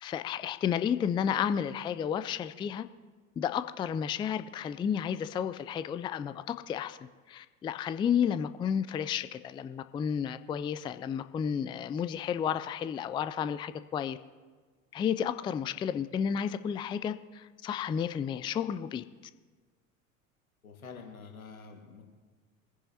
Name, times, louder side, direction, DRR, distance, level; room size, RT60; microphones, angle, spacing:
voice 1, 0.0-2.9 3.4-7.0 7.3-14.2 14.9-19.0, left 8 dB, 15° left, 12 dB, 0.3 m, -32 dB
voice 2, 20.6-22.1, left 5 dB, 85° left, 3 dB, 1.7 m, -47 dB
23.0 x 10.0 x 2.8 m, 1.4 s
figure-of-eight pair, 70°, 41 cm